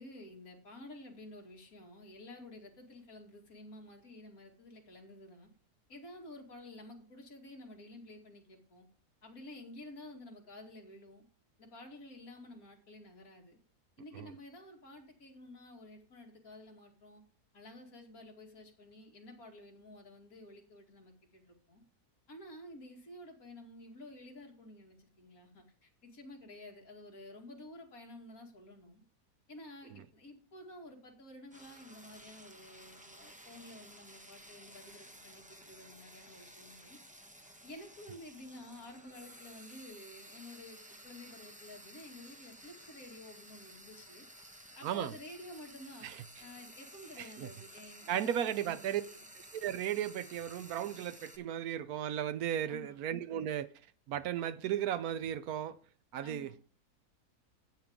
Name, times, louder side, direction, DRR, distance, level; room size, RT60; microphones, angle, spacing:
voice 1, 0.0-5.5 5.9-8.9 9.2-11.3 11.6-13.6 14.0-17.2 17.5-21.8 22.3-29.0 29.5-37.0 37.6-44.2 44.7-46.1 46.4-49.2 52.6-53.0 56.2-56.6, left 1 dB, 60° left, 2.7 m, -51 dB
Frying (food), 31.5-51.4, right 1 dB, 5° right, 0.9 m, -54 dB
voice 2, 44.8-45.1 46.0-46.2 47.2-47.5 48.1-49.0 49.5-53.7 54.1-55.8 56.1-56.5, right 10 dB, 75° right, 1.1 m, -35 dB
12.0 x 8.5 x 3.6 m
omnidirectional pair, 1.7 m